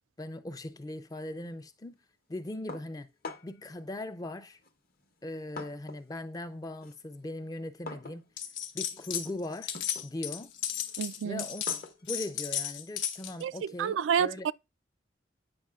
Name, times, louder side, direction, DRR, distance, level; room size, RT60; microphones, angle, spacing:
voice 1, 0.2-2.0 2.3-3.1 3.4-4.6 5.2-8.2 8.7-9.8 10.0-10.5 11.2-11.6 12.0-14.5, left 1 dB, 20° left, 0.4 m, -39 dB
sound 1, 2.7-3.7 4.6-6.2 6.5-13.8, left 3 dB, 50° left, 0.8 m, -47 dB
sound 2, 8.4-9.3 9.5-13.4, left 10 dB, 80° left, 0.8 m, -34 dB
voice 2, 11.0-11.4 13.4-13.5 13.8-14.5, right 8 dB, 80° right, 0.3 m, -29 dB
8.7 x 5.6 x 2.3 m
head